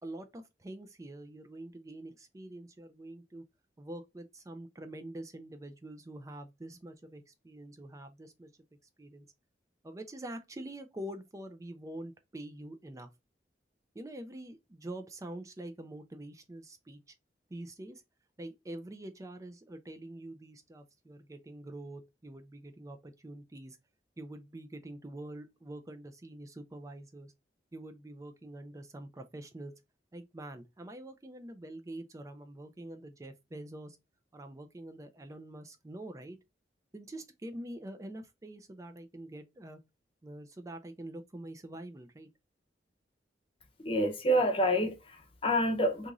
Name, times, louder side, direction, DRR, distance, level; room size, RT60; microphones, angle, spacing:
voice 1, 0.0-3.4 3.8-8.5 9.0-9.3 9.8-13.1 13.9-17.1 17.5-18.0 18.4-23.8 24.2-27.3 27.7-29.7 30.1-34.0 34.3-36.4 36.9-39.8 40.2-42.3, right 1 dB, 20° right, 0.4 m, -45 dB
voice 2, 43.8-46.1, equal, 30° left, 0.8 m, -28 dB
2.9 x 2.5 x 3.6 m
head